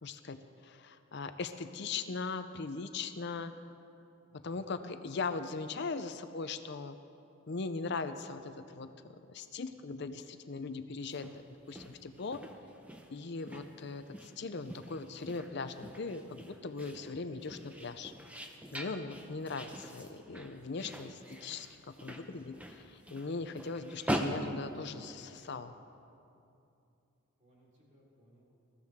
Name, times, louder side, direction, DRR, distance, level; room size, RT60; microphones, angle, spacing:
voice 1, 0.0-3.5 4.4-7.0 7.5-8.9 9.3-11.4 11.7-12.4 13.1-18.1 18.7-25.7, left 4 dB, 50° left, 9 dB, 0.5 m, -40 dB
sound 1, 11.0-25.5, equal, 5° right, 0.7 m, -43 dB
voice 2, 27.4-28.4, right 1 dB, 35° right, -6 dB, 3.8 m, -65 dB
21.0 x 14.5 x 3.6 m, 2.7 s
head